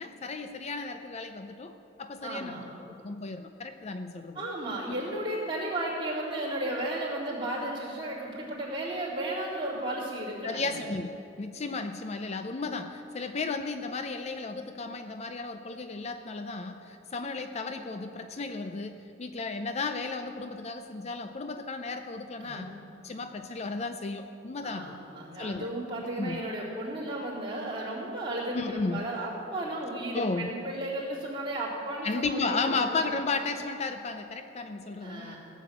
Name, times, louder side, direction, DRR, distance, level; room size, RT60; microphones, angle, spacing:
voice 1, 0.0-2.6 2.9-4.4 4.9-5.0 10.4-11.1 11.4-22.7 23.0-25.0 25.4-25.7 26.1-26.4 28.5-29.1 30.1-30.5 32.0-35.4, left 3 dB, 35° left, 8 dB, 0.5 m, -34 dB
voice 2, 2.2-2.6 4.3-10.8 22.4-22.7 24.6-32.9 35.0-35.4, right 1 dB, 25° right, -7 dB, 3.7 m, -34 dB
16.5 x 7.3 x 8.6 m, 2.8 s
head